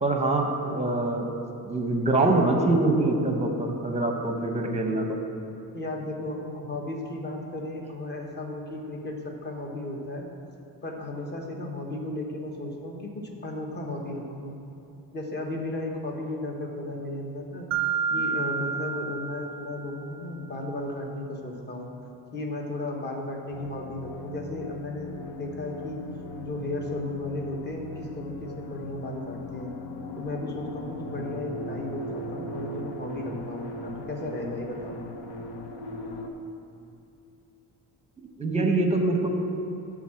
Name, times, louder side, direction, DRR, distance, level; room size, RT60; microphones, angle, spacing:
voice 1, 0.0-1.3 1.6-5.2 38.2-39.3, right 2 dB, 15° right, 3 dB, 0.8 m, -24 dB
voice 2, 5.7-10.3 10.8-14.6 15.1-17.7 18.1-21.9 22.3-26.0 26.4-29.7 30.2-35.0, left 1 dB, 25° left, 1 dB, 1.0 m, -34 dB
Mallet percussion, 17.7-20.3, right 6 dB, 45° right, 0.5 m, -30 dB
sound 1, 23.5-36.3, left 1 dB, 75° left, 0.9 m, -39 dB
11.0 x 3.7 x 7.5 m, 2.8 s
cardioid pair, 160°, 41 cm